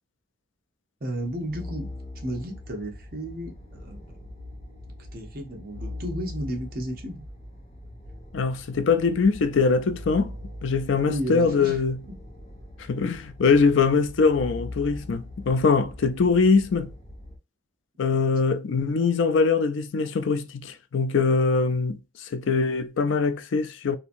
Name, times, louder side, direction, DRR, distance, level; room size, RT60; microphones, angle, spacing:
voice 1, 1.0-1.9 2.2-3.5 3.8-4.1 5.1-7.2 11.0-11.8, right 1 dB, 50° right, 0.8 m, -33 dB
sound 1, 1.1-17.4, left 1 dB, 35° left, 1.1 m, -41 dB
voice 2, 8.3-10.3 10.6-12.0 12.9-16.9 18.0-24.0, left 4 dB, 80° left, 0.4 m, -22 dB
2.8 x 2.6 x 2.5 m
head